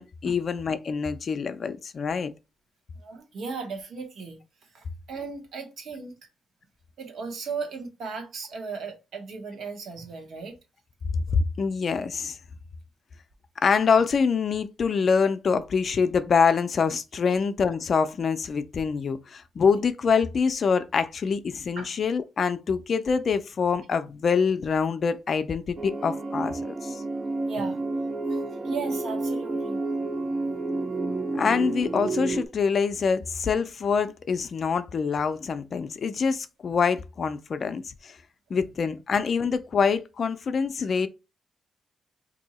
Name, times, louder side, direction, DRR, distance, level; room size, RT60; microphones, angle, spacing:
voice 1, 0.0-2.3 11.3-12.4 13.6-27.0 31.3-38.2 38.5-41.1, left 5 dB, 45° left, 0.4 m, -25 dB
voice 2, 3.0-4.4 4.7-6.1 7.0-10.6 17.3-17.4 21.8-21.9 27.5-27.8 28.3-29.8 38.5-38.6 40.9-41.0, right 4 dB, 70° right, 1.0 m, -36 dB
sound 1, 25.8-32.5, right 2 dB, 25° right, 0.3 m, -30 dB
2.8 x 2.6 x 4.1 m
cardioid pair, 130°, 0 cm